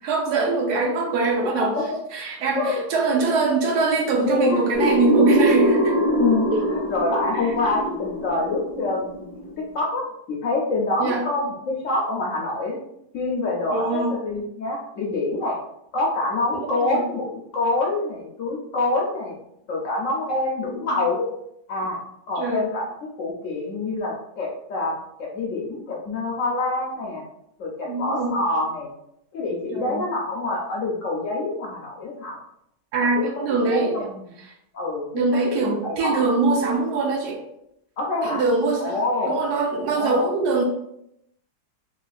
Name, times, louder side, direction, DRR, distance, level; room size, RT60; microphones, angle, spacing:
voice 1, 0.0-1.7 2.1-5.9 6.5-6.7 7.3-7.5 11.0-11.2 13.7-14.1 16.5-17.0 22.4-22.6 27.8-28.4 29.7-30.0 32.9-34.1 35.1-37.4 38.2-39.0 39.3-40.6, right 3 dB, 80° right, 1 dB, 1.2 m, -23 dB
voice 2, 1.6-2.0 2.6-3.2 4.2-5.0 6.0-9.5 9.7-12.8 13.1-15.6 15.9-19.4 19.7-21.3 21.7-22.0 22.3-22.9 23.2-27.2 27.6-28.9 29.3-32.4 33.2-34.1 34.7-36.2 38.0-38.4 38.8-39.4 39.9-40.3, left 2 dB, 65° left, -2 dB, 0.8 m, -26 dB
sound 1, 4.7-9.4, right 1 dB, 35° right, 1.6 m, -23 dB
3.1 x 3.0 x 2.3 m, 0.77 s
omnidirectional pair, 1.7 m